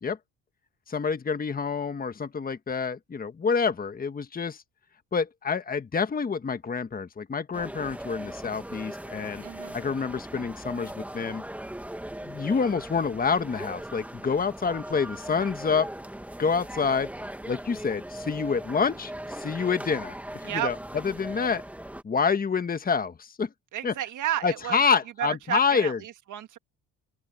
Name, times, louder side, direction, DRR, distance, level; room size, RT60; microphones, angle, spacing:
voice 1, 0.9-4.6 5.1-9.4 9.7-11.4 12.2-15.9 16.4-17.1 17.5-20.1 20.4-20.7 21.0-21.6 22.0-23.5 23.8-23.9 24.4-26.0, left 5 dB, 25° left, 1.4 m, -27 dB
sound 1, 7.5-22.0, right 1 dB, 5° right, 1.6 m, -39 dB
voice 2, 9.4-9.7 20.5-20.7 23.7-24.8 25.2-26.6, right 13 dB, 60° right, 1.4 m, -32 dB
open air
cardioid pair, 95°, 34 cm